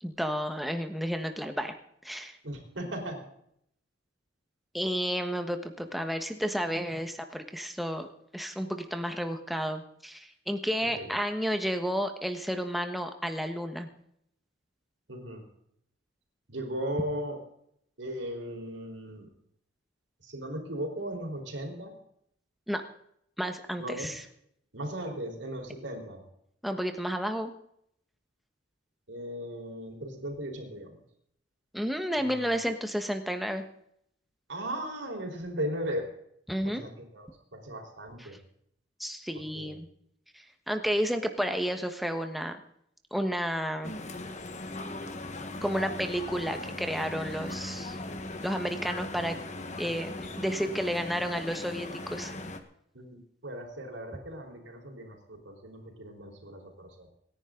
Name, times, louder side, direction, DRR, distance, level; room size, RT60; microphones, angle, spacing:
voice 1, 0.0-1.7 2.0-2.4 4.7-13.9 22.7-22.8 23.4-24.2 26.6-27.5 31.7-33.6 36.5-36.8 38.2-38.4 39.0-39.9 40.3-42.6 43.1-43.9 45.6-48.0 48.4-49.4 49.8-52.3, equal, ahead, 6 dB, 1.3 m, -31 dB
voice 2, 2.4-3.2 11.0-11.1 15.1-15.4 16.5-17.4 18.0-19.3 20.2-21.9 23.8-24.1 24.7-26.2 29.1-31.0 32.2-32.7 34.5-36.1 36.6-38.4 39.5-39.7 52.9-57.1, equal, 85° right, 2 dB, 4.4 m, -37 dB
sound 1, 43.8-52.6, left 2 dB, 40° left, 1.4 m, -39 dB
27.0 x 10.5 x 3.9 m, 0.71 s
head